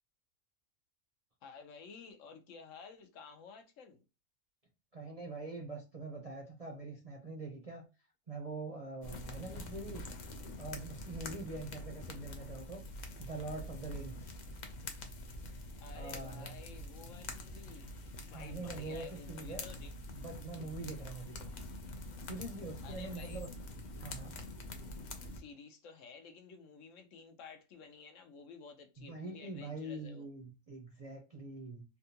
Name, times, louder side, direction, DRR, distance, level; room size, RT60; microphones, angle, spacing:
voice 1, 1.4-4.0 15.8-17.9 18.3-19.9 22.8-23.4 25.3-30.3, left 5 dB, 70° left, 1.0 m, -53 dB
voice 2, 4.9-7.9 8.3-10.1 10.6-12.8 13.2-14.3 15.9-16.6 18.3-19.6 20.1-21.5 22.3-23.5 24.0-24.4 29.0-31.8, right 2 dB, 40° right, 0.6 m, -44 dB
sound 1, 9.0-25.4, left 1 dB, 50° left, 0.5 m, -45 dB
3.5 x 2.3 x 2.8 m
omnidirectional pair, 1.4 m